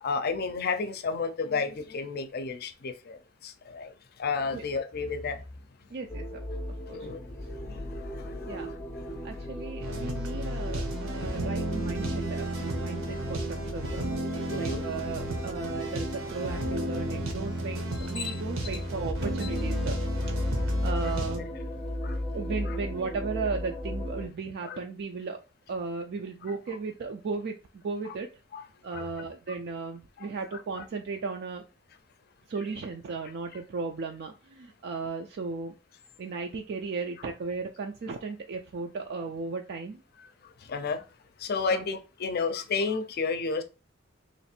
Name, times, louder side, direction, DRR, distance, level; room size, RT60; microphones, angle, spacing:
voice 1, 0.0-3.9 4.2-5.4 6.9-7.2 7.5-9.2 14.5-14.8 18.2-18.3 19.4-19.5 21.0-21.1 22.0-22.2 22.7-22.8 24.6-24.8 28.5-28.6 28.9-29.1 30.2-30.3 40.4-41.0 41.4-43.6, left 4 dB, 50° left, 8 dB, 0.5 m, -32 dB
voice 2, 5.9-6.4 6.9-7.1 8.4-8.7 9.2-14.0 14.5-20.0 20.4-21.5 22.3-25.4 25.7-28.3 28.8-31.6 32.5-35.7 36.2-40.0 41.7-41.8, right 4 dB, 55° right, 4 dB, 0.4 m, -36 dB
sound 1, 6.1-24.3, left 1 dB, 10° left, 0.7 m, -35 dB
sound 2, 9.8-21.4, right 1 dB, 90° right, 1.0 m, -33 dB
3.1 x 2.4 x 4.2 m, 0.31 s
head